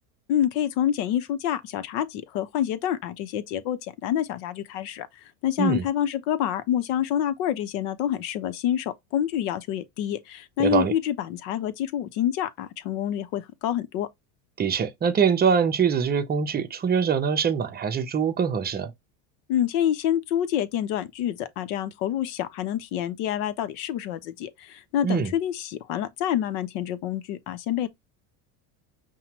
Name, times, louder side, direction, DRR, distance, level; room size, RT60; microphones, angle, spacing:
voice 1, 0.3-5.1 5.4-14.1 19.5-27.9, left 10 dB, 65° left, 0.8 m, -27 dB
voice 2, 10.6-10.9 14.6-18.9 25.0-25.3, right 6 dB, 20° right, 0.6 m, -23 dB
5.6 x 2.3 x 3.0 m
supercardioid pair, 110°, 47 cm